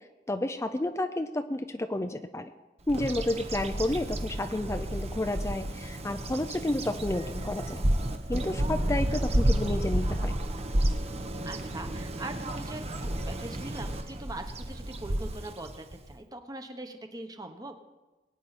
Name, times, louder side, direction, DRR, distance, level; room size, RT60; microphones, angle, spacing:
voice 1, 0.3-2.5 2.9-7.8 8.3-10.3, left 1 dB, 15° left, 8 dB, 0.5 m, -31 dB
Bird vocalization bird call bird song, 2.9-16.2, right 1 dB, 40° right, 1.0 m, -31 dB
voice 2, 11.4-17.8, right 2 dB, 20° right, 6 dB, 1.1 m, -42 dB
21.5 x 9.2 x 4.2 m, 1.2 s
head